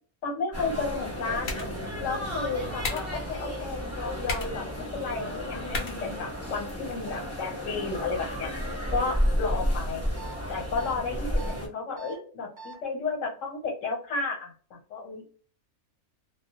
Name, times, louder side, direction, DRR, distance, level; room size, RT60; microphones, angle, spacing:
voice 1, 0.2-1.6 2.0-8.5 8.9-10.0 10.5-15.3, left 4 dB, 75° left, 1 dB, 1.2 m, -33 dB
sound 1, 0.5-11.7, equal, 15° left, 0.8 m, -32 dB
sound 2, 0.9-6.9, left 2 dB, 60° left, 0.8 m, -39 dB
sound 3, 10.2-10.3 10.8-10.9 11.4-11.5 12.0-12.1 12.6-12.7, right 4 dB, 25° right, 1.0 m, -43 dB
2.3 x 2.1 x 2.7 m, 0.42 s
omnidirectional pair, 1.4 m